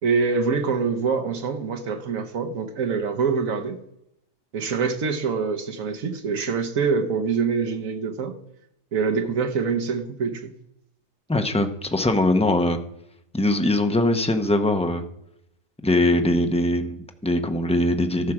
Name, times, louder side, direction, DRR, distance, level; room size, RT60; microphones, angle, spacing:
voice 1, 0.0-3.8 4.5-8.4 8.9-10.5, right 5 dB, 80° right, 1.4 m, -25 dB
voice 2, 11.3-12.8 13.3-15.0 15.8-18.3, left 1 dB, 10° left, 0.4 m, -21 dB
14.0 x 5.9 x 4.8 m
omnidirectional pair, 1.4 m